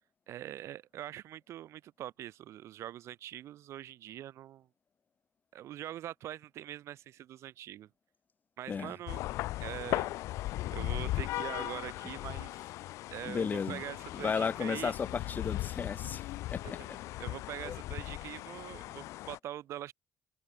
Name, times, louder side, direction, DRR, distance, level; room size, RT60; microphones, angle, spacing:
voice 1, 0.3-4.7 5.5-7.9 8.6-9.2 9.6-10.1 10.7-12.7 13.1-14.9 16.6-19.9, right 12 dB, 70° right, 5.0 m, -43 dB
sound 1, 9.1-19.4, left 17 dB, 80° left, 2.4 m, -38 dB
voice 2, 13.3-13.8 14.1-16.2 16.5-17.0 17.6-17.7, left 6 dB, 35° left, 6.2 m, -34 dB
cardioid pair, 105°, 5 cm